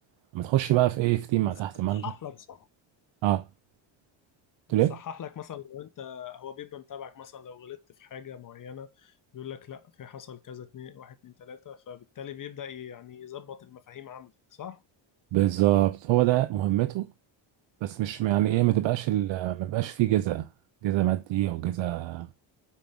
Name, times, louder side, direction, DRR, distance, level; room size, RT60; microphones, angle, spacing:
voice 1, 0.3-2.1 3.2-3.4 4.7-5.0 15.3-17.1 17.8-20.5 20.8-22.3, right 15 dB, 70° right, 0.7 m, -25 dB
voice 2, 1.9-2.7 4.7-14.8, left 9 dB, 45° left, 0.9 m, -42 dB
7.0 x 5.7 x 7.3 m
cardioid pair, 140°, 47 cm